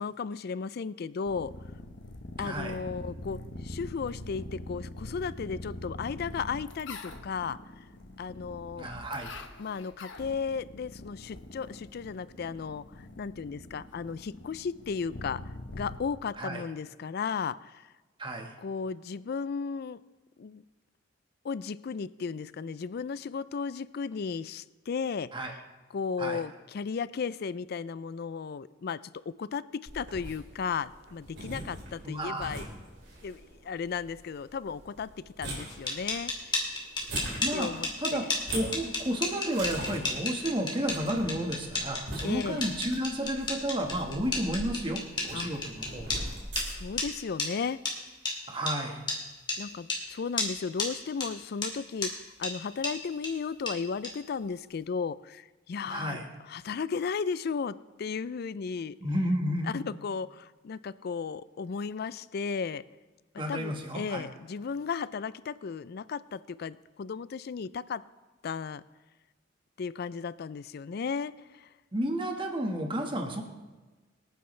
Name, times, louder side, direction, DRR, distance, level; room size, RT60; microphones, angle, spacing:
voice 1, 0.0-1.5 2.4-7.8 8.2-8.9 9.6-17.9 18.6-20.0 20.4-20.6 21.4-25.6 25.9-29.0 29.4-32.7 33.2-36.3 37.5-38.3 42.2-42.6 45.3-45.5 46.6-47.8 49.6-52.1 52.4-59.0 59.7-62.8 63.5-68.0 68.4-68.8 69.8-71.7, left 5 dB, 55° left, 18 dB, 0.4 m, -35 dB
sound 1, 1.3-16.0, left 1 dB, 70° left, 1.1 m, -44 dB
voice 2, 2.4-2.8 8.8-9.3 16.4-16.6 18.2-18.5 25.3-25.5 26.2-26.4 32.0-32.6 37.4-37.7 38.0-38.2 38.5-46.2 48.5-49.0 55.8-56.3 59.0-59.8 63.4-64.3 71.9-73.4, right 1 dB, 25° right, 3 dB, 1.5 m, -32 dB
sound 2, 29.9-47.0, right 1 dB, 65° right, 4.4 m, -42 dB
sound 3, 35.7-46.2 46.6-46.7 47.0-47.1 47.4-47.5 47.9-48.0 48.3-48.4 48.7-48.8 49.1-49.2 49.5-49.6 49.9-50.0 50.4-50.5 50.8-50.9 51.2-51.3 51.6-51.7 52.0-52.1 52.4-52.5 52.8-52.9 53.2-53.3 53.7-53.8 54.0-54.1, left 3 dB, 25° left, 2.5 m, -31 dB
24.5 x 9.2 x 3.3 m, 1.2 s
head